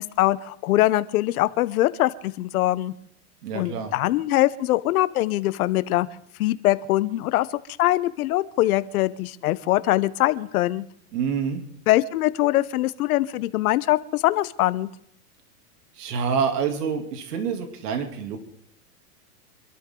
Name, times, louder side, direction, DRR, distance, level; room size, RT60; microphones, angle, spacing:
voice 1, 0.0-2.9 3.5-6.1 6.4-7.5 7.8-10.8 11.9-14.9, left 16 dB, 65° left, 15 dB, 1.1 m, -22 dB
voice 2, 3.4-3.9 11.1-11.6 15.9-18.4, right 6 dB, 75° right, 4 dB, 3.0 m, -27 dB
26.5 x 13.0 x 3.9 m, 0.70 s
supercardioid pair, 140°, 48 cm